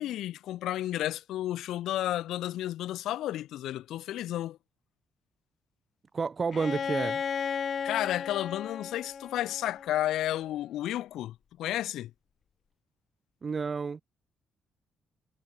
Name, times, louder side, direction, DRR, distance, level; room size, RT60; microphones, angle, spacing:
voice 1, 0.0-4.6 7.8-12.1, left 13 dB, 80° left, 0.6 m, -32 dB
voice 2, 6.1-7.2 13.4-14.0, right 5 dB, 35° right, 1.1 m, -30 dB
Bowed string instrument, 6.5-10.3, left 7 dB, 50° left, 4.0 m, -35 dB
cardioid pair, 90°, 0 cm